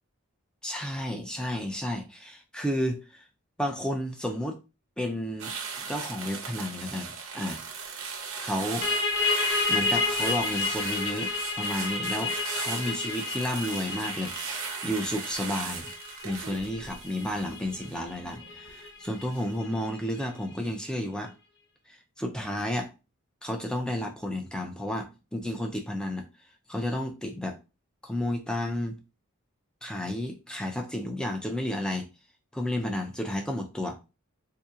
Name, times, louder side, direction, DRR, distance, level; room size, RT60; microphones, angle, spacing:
voice 1, 0.6-3.2 3.6-4.6 5.0-7.6 8.4-8.9 9.7-11.3 11.6-15.9 16.2-21.3 21.9-22.9 23.4-26.3 26.7-27.6 28.0-29.0 29.8-32.1 32.5-34.0, left 1 dB, 5° left, 0.5 m, -32 dB
sound 1, 5.4-18.7 19.1-19.4, right 6 dB, 70° right, 0.8 m, -37 dB
sound 2, 8.8-20.2, left 4 dB, 50° left, 0.6 m, -31 dB
2.8 x 2.7 x 3.6 m
head